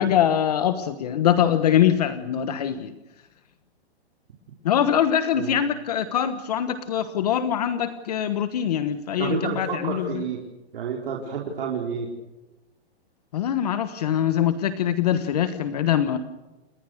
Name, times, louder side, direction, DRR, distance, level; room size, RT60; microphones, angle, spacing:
voice 1, 0.0-3.0 4.6-10.2 13.3-16.2, left 10 dB, 35° left, 10 dB, 1.2 m, -23 dB
voice 2, 9.2-10.4 10.7-12.1, right 6 dB, 55° right, -2 dB, 4.6 m, -29 dB
29.5 x 21.5 x 6.6 m, 1.0 s
hypercardioid pair, 175°, 33 cm